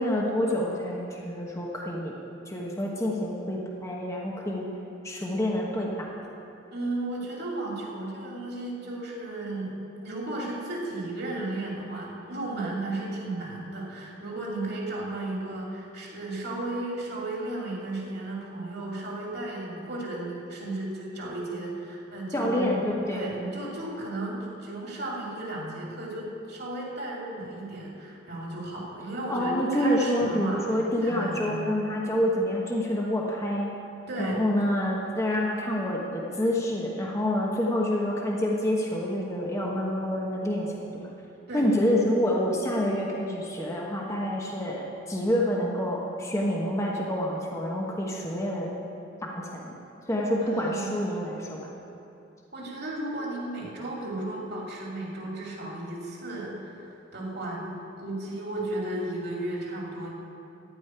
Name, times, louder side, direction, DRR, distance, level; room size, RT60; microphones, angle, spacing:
voice 1, 0.0-2.1 2.5-4.7 5.0-6.1 22.3-23.3 29.3-33.7 34.2-41.1 41.5-48.7 49.3-49.7 50.1-51.7, left 1 dB, 15° left, -3 dB, 1.2 m, -27 dB
voice 2, 6.7-22.7 23.1-31.6 34.1-34.4 41.5-41.7 50.4-51.1 52.5-60.1, right 2 dB, 60° right, -3 dB, 2.7 m, -34 dB
15.0 x 5.2 x 9.6 m, 2.7 s
head